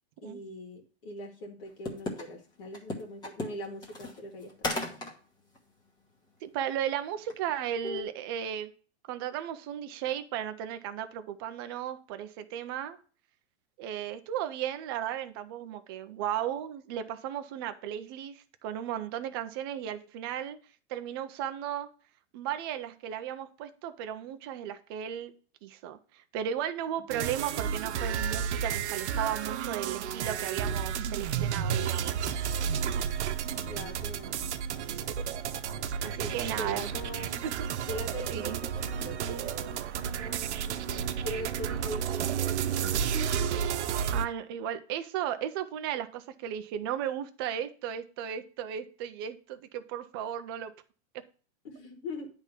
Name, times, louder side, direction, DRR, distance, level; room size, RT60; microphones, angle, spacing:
voice 1, 0.2-4.8 33.6-34.5 36.0-37.4 37.9-43.1 51.6-52.3, left 1 dB, 55° left, 2.0 m, -42 dB
sound 1, 1.9-2.2 2.7-5.1 5.6-5.7 7.3-7.5 7.8-8.0, left 1 dB, 10° left, 1.2 m, -34 dB
voice 2, 6.4-8.7 9.1-13.0 13.8-20.6 20.9-21.9 22.3-25.3 25.6-32.3 36.0-36.9 37.4-37.7 38.3-38.7 44.1-50.7, right 10 dB, 25° right, 0.4 m, -35 dB
sound 2, 27.1-44.3, right 8 dB, 90° right, 0.8 m, -32 dB
9.8 x 3.6 x 5.6 m
supercardioid pair, 165°, 33 cm